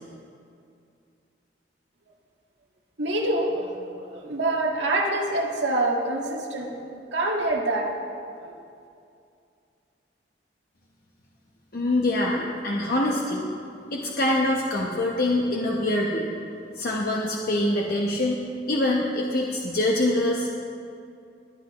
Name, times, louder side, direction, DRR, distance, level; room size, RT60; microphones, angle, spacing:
voice 1, 3.0-6.8 7.1-7.9 8.4-8.5, right 2 dB, 90° right, -1 dB, 1.6 m, -26 dB
voice 2, 11.7-13.5 13.9-16.3 16.8-18.4 18.7-20.7, left 1 dB, 55° left, -2 dB, 1.0 m, -24 dB
20.5 x 9.8 x 3.1 m, 2.5 s
head